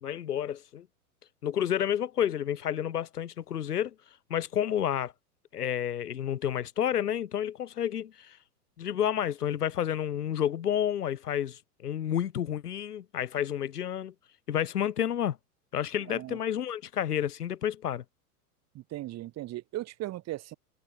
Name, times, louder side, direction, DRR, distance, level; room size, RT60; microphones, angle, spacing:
voice 1, 0.0-0.9 1.4-3.9 4.3-5.1 5.5-8.4 8.8-14.1 14.5-15.4 15.7-18.0, left 10 dB, 80° left, 1.7 m, -30 dB
voice 2, 16.1-16.4 18.7-20.6, right 15 dB, 35° right, 2.3 m, -37 dB
hypercardioid pair, 105°, 46 cm